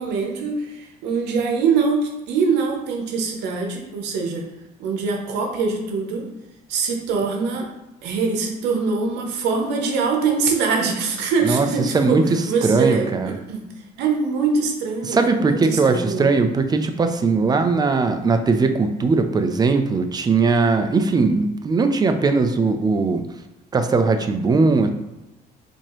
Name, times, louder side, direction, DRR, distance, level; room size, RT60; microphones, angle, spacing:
voice 1, 0.0-4.4 4.8-6.3 6.7-7.7 8.0-13.1 13.5-13.6 14.0-16.3, right 5 dB, 90° right, 1 dB, 0.8 m, -23 dB
voice 2, 11.4-13.4 15.0-23.2 23.7-24.9, right 4 dB, 25° right, 7 dB, 0.4 m, -19 dB
4.4 x 2.9 x 3.0 m, 0.98 s
cardioid pair, 110°, 17 cm